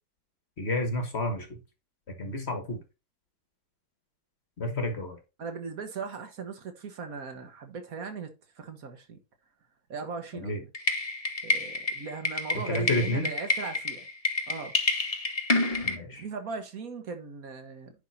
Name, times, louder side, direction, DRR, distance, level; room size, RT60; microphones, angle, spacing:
voice 1, 0.6-1.6 2.2-2.8 4.6-5.2 10.3-10.6 12.5-13.3 15.8-16.2, left 1 dB, 35° left, 1.4 m, -30 dB
voice 2, 5.4-9.2 9.9-10.7 11.4-14.1 14.5-14.7 16.0-17.9, right 5 dB, 45° right, 1.6 m, -38 dB
sound 1, 10.7-16.0, left 3 dB, 70° left, 0.3 m, -29 dB
10.0 x 3.8 x 4.1 m
omnidirectional pair, 2.3 m